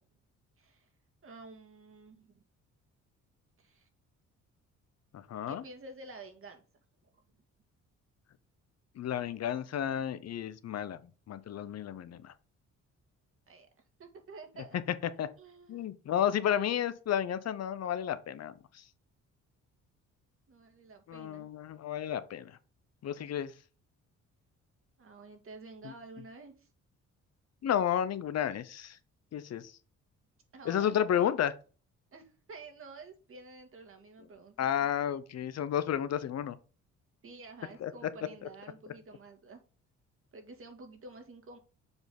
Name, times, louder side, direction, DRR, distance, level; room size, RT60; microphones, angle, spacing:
voice 1, 0.6-0.9 1.2-2.4 3.6-3.9 5.5-6.6 7.3-7.4 13.5-13.7 14.0-14.8 15.4-15.9 20.5-21.5 25.0-26.7 30.5-31.2 32.1-34.9 37.2-39.6 40.3-41.6, right 3 dB, 45° right, 2.1 m, -50 dB
voice 2, 5.1-5.6 9.0-11.0 11.3-12.3 15.2-15.3 15.7-18.8 21.1-22.6 23.0-23.5 27.6-29.0 29.3-29.7 30.7-31.5 34.6-36.6 37.8-37.9, left 9 dB, 55° left, 0.8 m, -32 dB
7.1 x 4.0 x 5.3 m
cardioid pair, 90°, 30 cm